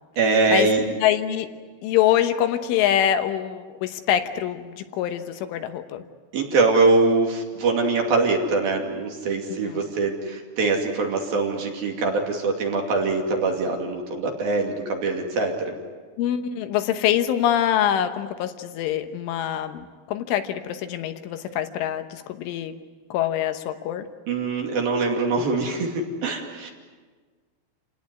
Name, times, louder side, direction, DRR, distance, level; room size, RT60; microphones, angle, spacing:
voice 1, 0.2-0.8 6.3-15.8 24.3-26.7, right 3 dB, 55° right, 1 dB, 4.0 m, -23 dB
voice 2, 1.0-1.5 1.8-6.0 9.7-9.8 16.2-22.7 23.1-24.1, left 10 dB, 80° left, 8 dB, 3.5 m, -24 dB
28.5 x 18.0 x 9.6 m, 1.4 s
omnidirectional pair, 5.7 m